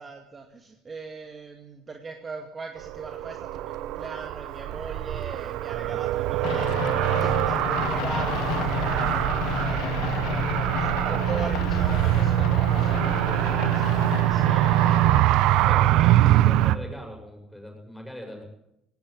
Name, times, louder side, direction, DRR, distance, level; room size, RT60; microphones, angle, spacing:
voice 1, 0.0-15.0 15.6-16.1, right 4 dB, 25° right, 3 dB, 2.2 m, -40 dB
Car, 2.8-16.8, right 14 dB, 70° right, 0.9 m, -23 dB
voice 2, 5.7-6.0 15.7-18.4, left 1 dB, ahead, 2 dB, 7.1 m, -42 dB
sound 1, 6.4-15.2, left 11 dB, 70° left, 1.1 m, -32 dB
18.0 x 17.5 x 8.8 m, 0.84 s
cardioid pair, 120°, 0 cm